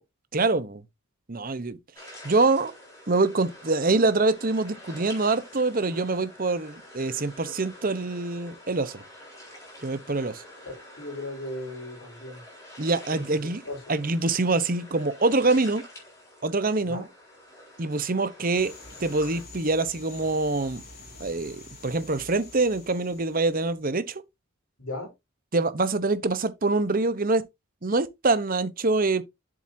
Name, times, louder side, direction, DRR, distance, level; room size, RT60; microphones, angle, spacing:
voice 1, 0.3-0.8 1.3-1.8 2.2-2.7 3.1-9.0 9.8-10.4 12.8-13.6 13.9-15.8 16.4-17.0 17.8-18.7 19.0-20.8 21.2-24.2 25.5-27.4 27.8-29.2, right 3 dB, 40° right, 0.8 m, -25 dB
sound 1, 1.9-19.4, left 1 dB, 15° left, 4.1 m, -47 dB
voice 2, 11.0-12.4 13.1-13.8 16.8-17.1 24.8-25.1, left 2 dB, 75° left, 4.6 m, -37 dB
sound 2, 18.5-23.8, left 2 dB, 45° left, 3.7 m, -47 dB
7.8 x 7.6 x 2.7 m
head